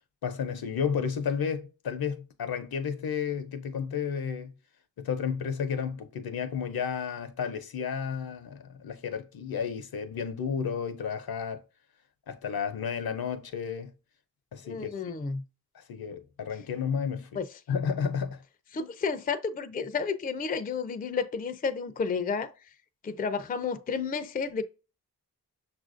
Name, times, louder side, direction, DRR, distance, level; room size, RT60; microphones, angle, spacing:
voice 1, 0.2-4.5 5.0-11.6 12.3-13.9 14.5-14.9 15.7-17.3 17.7-18.4, left 7 dB, 70° left, 0.6 m, -32 dB
voice 2, 14.6-15.4 17.4-17.5 18.7-22.5 23.0-24.6, left 5 dB, 25° left, 0.4 m, -31 dB
5.8 x 2.5 x 2.4 m
cardioid pair, 40°, 38 cm